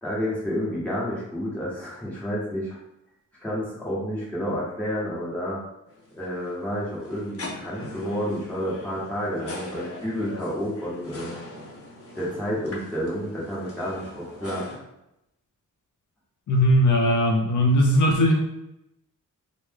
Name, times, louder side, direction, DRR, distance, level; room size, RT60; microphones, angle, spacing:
voice 1, 0.0-2.8 3.4-5.6 6.2-11.4 12.1-14.8, equal, 5° left, -7 dB, 1.2 m, -30 dB
sound 1, 5.9-14.8, left 2 dB, 45° left, 0.9 m, -41 dB
voice 2, 16.5-18.4, equal, 65° left, 1 dB, 0.5 m, -19 dB
3.1 x 2.1 x 3.4 m, 0.86 s
wide cardioid pair, 120°, 32 cm